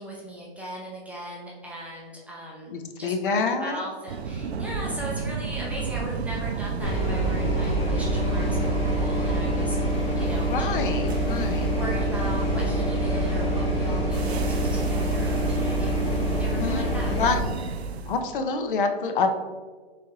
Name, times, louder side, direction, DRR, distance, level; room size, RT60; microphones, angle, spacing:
voice 1, 0.0-2.7 3.0-10.7 11.4-16.0 16.4-17.2, right 1 dB, 5° right, -5 dB, 0.5 m, -38 dB
voice 2, 2.7-3.8 10.5-11.7 16.5-16.9 17.1-17.4 18.1-19.4, left 4 dB, 55° left, 6 dB, 0.7 m, -27 dB
sound 1, 4.1-18.2, right 5 dB, 90° right, 0.5 m, -32 dB
sound 2, 6.8-17.4, equal, 20° left, 1.0 m, -26 dB
4.3 x 3.3 x 3.6 m, 1.4 s
hypercardioid pair, 130°, 31 cm